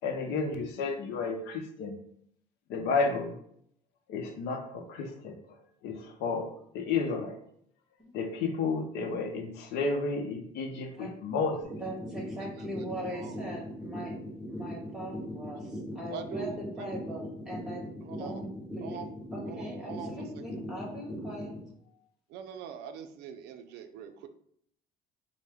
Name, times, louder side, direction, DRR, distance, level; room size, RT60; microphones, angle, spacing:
voice 1, 0.0-2.0 2.7-3.3 4.1-5.4 5.8-7.4 8.1-11.7, left 4 dB, 85° left, 5 dB, 0.6 m, -32 dB
sound 1, 11.6-21.6, left 1 dB, 15° left, 1.3 m, -39 dB
voice 2, 11.8-14.1 14.5-17.9 18.2-19.0 19.3-21.5, equal, 5° right, -2 dB, 1.5 m, -41 dB
voice 3, 16.1-16.9 18.0-18.4 18.8-19.1 19.5-20.4 22.3-24.3, right 8 dB, 80° right, 8 dB, 0.4 m, -43 dB
4.3 x 2.1 x 3.4 m, 0.67 s
cardioid pair, 110°, 17 cm